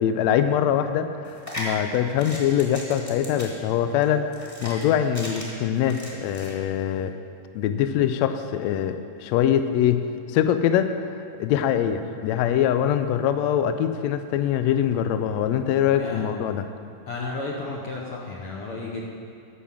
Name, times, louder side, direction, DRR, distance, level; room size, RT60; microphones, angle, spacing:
voice 1, 0.0-7.1 7.5-10.0 10.3-11.0 11.4-16.6, left 9 dB, 90° left, 9 dB, 1.5 m, -23 dB
sound 1, 1.2-6.5, equal, 10° left, 1.3 m, -37 dB
voice 2, 17.1-19.0, left 3 dB, 70° left, -2 dB, 1.3 m, -33 dB
11.0 x 6.3 x 7.5 m, 2.4 s
omnidirectional pair, 3.7 m